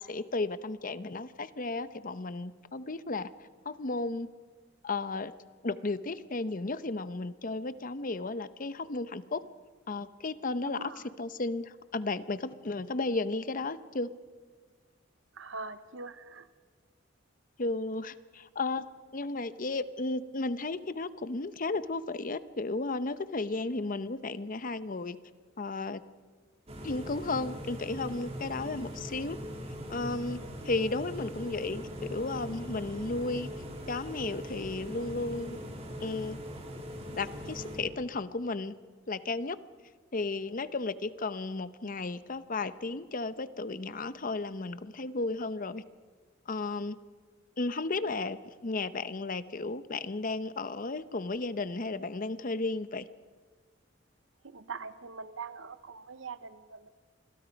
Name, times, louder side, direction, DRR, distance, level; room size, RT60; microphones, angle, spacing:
voice 1, 0.0-3.3 3.6-4.3 4.8-5.3 5.6-9.4 9.9-14.1 17.6-18.8 19.1-25.2 25.6-26.0 26.8-29.4 29.9-30.4 30.6-33.5 33.9-35.6 36.0-36.4 37.1-38.7 39.1-39.6 40.1-45.8 46.5-47.0 47.6-53.0, left 3 dB, 45° left, 14 dB, 0.8 m, -34 dB
voice 2, 10.6-11.1 15.4-16.5 54.4-56.9, right 4 dB, 85° right, 13 dB, 0.9 m, -43 dB
sound 1, 26.7-37.8, equal, 35° right, 3.3 m, -41 dB
28.0 x 22.0 x 5.2 m, 1.5 s
head